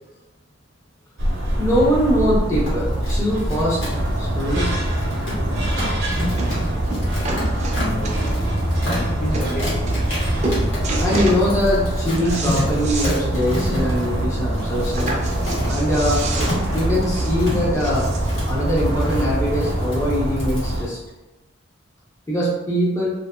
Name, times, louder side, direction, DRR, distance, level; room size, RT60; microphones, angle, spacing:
sound 1, 1.2-20.8, right 1 dB, 60° right, 0.7 m, -23 dB
voice 1, 1.6-4.7 11.0-15.2 15.7-16.3 16.7-18.1 18.5-21.0 22.3-23.1, equal, 15° left, -7 dB, 0.7 m, -22 dB
sound 2, 2.5-20.8, left 1 dB, 75° left, 1.3 m, -31 dB
sound 3, 5.6-5.7 6.4-6.6 6.9-8.5 9.0-9.1 9.3-9.5 9.9-10.2 10.4-11.4 11.8-13.2 13.5-13.6 13.9-14.0 14.9-18.4 19.2-19.3, right 2 dB, 35° right, 0.4 m, -30 dB
voice 2, 7.8-8.3 8.8-9.9, equal, 40° left, -4 dB, 0.3 m, -32 dB
2.8 x 2.6 x 2.2 m, 1.0 s
head